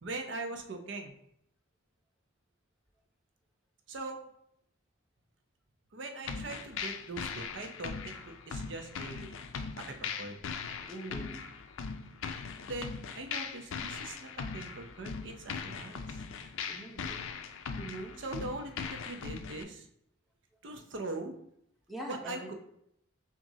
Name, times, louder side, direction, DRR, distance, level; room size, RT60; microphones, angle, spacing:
voice 1, 0.0-1.1 3.9-4.2 5.9-9.4 9.8-10.4 12.6-16.2 18.2-19.9 20.6-21.4 22.1-22.5, right 2 dB, 65° right, 5 dB, 0.6 m, -41 dB
sound 1, 6.3-19.6, left 5 dB, 85° left, 0.4 m, -40 dB
voice 2, 10.9-11.5 16.7-17.2 17.7-18.1 21.9-22.5, right 1 dB, ahead, -2 dB, 0.7 m, -43 dB
6.0 x 2.6 x 2.7 m, 0.73 s
head